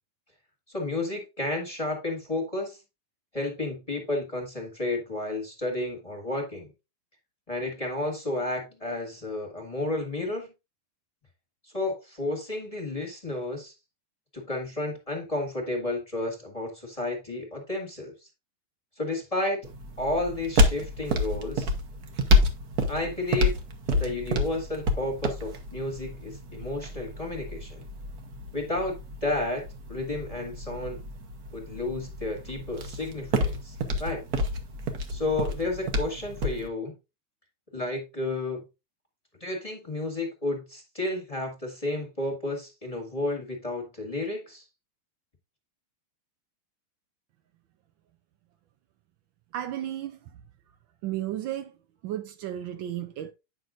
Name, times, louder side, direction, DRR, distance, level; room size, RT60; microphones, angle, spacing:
voice 1, 0.7-2.8 3.3-6.7 7.5-10.5 11.7-13.7 14.3-18.1 19.0-19.6 20.0-21.7 22.9-23.6 23.9-27.8 28.5-28.9 29.2-31.0 31.5-34.2 35.1-36.9 37.7-38.6 39.4-44.6, left 2 dB, 20° left, 1.6 m, -32 dB
sound 1, 19.6-36.7, left 1 dB, 55° right, 1.3 m, -29 dB
voice 2, 49.5-50.4 51.0-51.8 52.0-53.3, right 12 dB, 75° right, 1.3 m, -33 dB
9.2 x 5.9 x 2.5 m
omnidirectional pair, 2.3 m